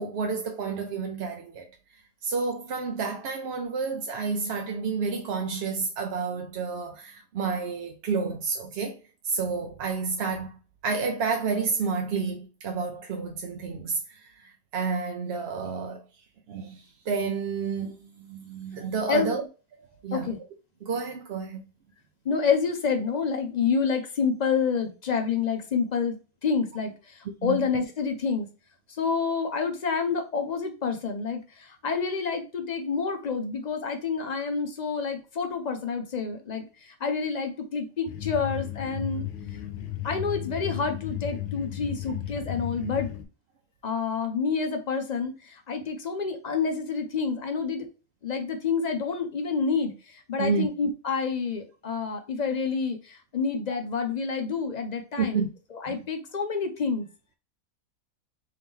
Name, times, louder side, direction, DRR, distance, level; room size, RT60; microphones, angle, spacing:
voice 1, 0.0-1.7 2.2-9.0 9.2-16.0 16.5-19.4 20.0-20.3 20.8-21.6 27.4-27.6 50.4-50.7 55.2-55.5 55.9-56.0, right 5 dB, 60° right, 0.7 m, -30 dB
voice 2, 22.2-26.2 26.4-28.5 28.9-39.3 40.0-43.1 43.8-47.9 48.2-55.5 55.7-57.1, left 5 dB, 55° left, 0.5 m, -28 dB
sound 1, 38.1-43.2, left 13 dB, 85° left, 1.1 m, -34 dB
3.7 x 3.0 x 3.6 m
omnidirectional pair, 1.5 m